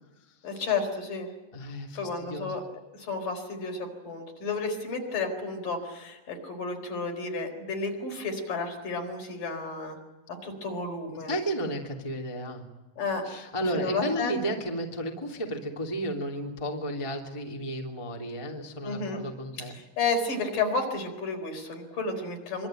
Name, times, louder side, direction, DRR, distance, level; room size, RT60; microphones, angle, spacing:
voice 1, 0.4-1.3 2.0-2.6 2.9-10.0 10.3-11.3 13.0-13.5 13.7-14.4 18.8-19.2 19.6-22.7, left 3 dB, 45° left, 3 dB, 5.8 m, -32 dB
voice 2, 1.5-2.6 11.3-12.7 13.2-19.8, equal, 10° left, 0 dB, 1.9 m, -33 dB
26.0 x 24.5 x 9.2 m, 1.0 s
omnidirectional pair, 5.6 m